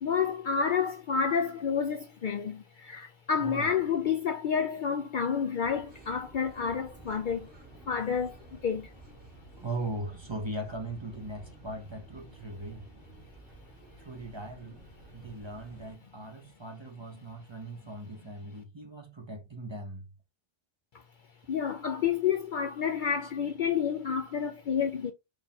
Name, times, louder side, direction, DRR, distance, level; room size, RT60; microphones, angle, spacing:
voice 1, 0.0-7.5 7.9-8.9 21.5-25.1, left 7 dB, 60° left, 0.6 m, -29 dB
voice 2, 3.4-3.7 9.6-12.9 14.0-14.8 15.1-20.1 23.2-23.3, right 2 dB, 25° right, 0.8 m, -39 dB
sound 1, 5.6-16.0, right 2 dB, 50° right, 2.4 m, -52 dB
4.8 x 2.8 x 3.5 m
omnidirectional pair, 1.1 m